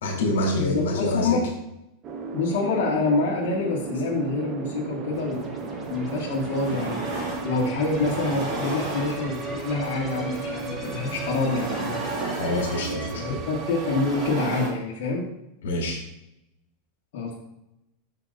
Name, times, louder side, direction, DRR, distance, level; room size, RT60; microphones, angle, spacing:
voice 1, 0.0-1.4 12.4-13.4 15.6-16.0, left 1 dB, 90° left, 1 dB, 2.3 m, -26 dB
voice 2, 0.6-1.5 2.3-7.0 7.4-12.0 13.1-15.2 17.1-17.3, left 3 dB, 65° left, -5 dB, 1.9 m, -26 dB
sound 1, 2.0-14.5, right 5 dB, 35° right, 0.9 m, -35 dB
sound 2, 5.1-13.1, left 3 dB, 25° left, 1.3 m, -43 dB
sound 3, 5.8-5.9 6.3-7.5 7.9-9.5 10.6-14.7, right 2 dB, 50° right, 2.6 m, -33 dB
6.6 x 5.6 x 4.1 m, 0.84 s
supercardioid pair, 140°, 0 cm